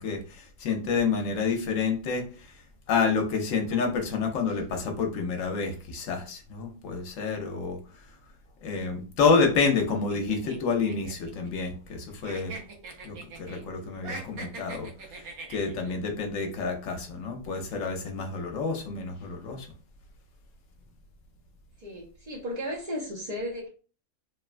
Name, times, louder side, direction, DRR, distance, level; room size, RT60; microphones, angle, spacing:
voice 1, 0.0-2.5 2.9-7.8 8.6-12.5 13.0-14.9 15.5-19.7, left 5 dB, 70° left, 3 dB, 1.0 m, -28 dB
sound 1, 10.1-12.0 12.2-13.6 13.9-15.9, right 3 dB, 85° right, 1.2 m, -42 dB
voice 2, 21.8-23.7, equal, 50° right, -5 dB, 0.5 m, -35 dB
3.0 x 2.2 x 2.4 m, 0.37 s
omnidirectional pair, 1.5 m